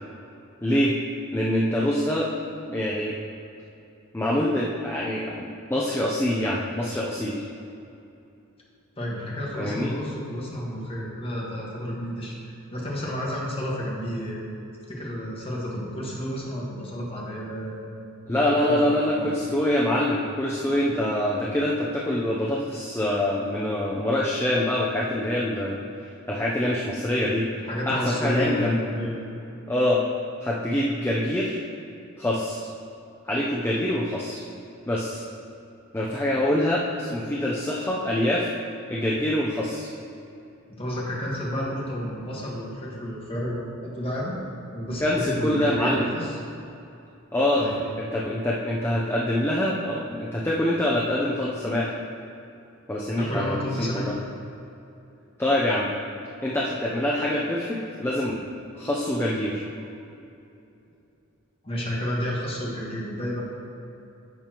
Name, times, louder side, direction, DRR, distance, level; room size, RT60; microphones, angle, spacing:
voice 1, 0.6-1.0 1.3-2.3 2.7-3.2 4.1-7.5 9.6-9.9 18.3-25.8 26.3-27.4 27.9-28.8 29.7-30.0 30.4-31.6 32.2-32.7 33.3-34.4 34.9-35.2 35.9-38.5 38.9-39.9 45.0-46.1 47.3-47.6 48.0-51.9 52.9-54.2 55.4-55.9 56.4-58.4 58.8-59.6, left 1 dB, 10° left, -4 dB, 0.6 m, -25 dB
voice 2, 9.0-14.4 14.9-17.8 18.3-19.3 27.5-29.2 40.7-44.3 44.7-46.4 47.6-47.8 53.2-54.1 61.6-63.4, equal, 25° left, -4 dB, 1.5 m, -31 dB
10.5 x 7.0 x 3.0 m, 2.8 s
head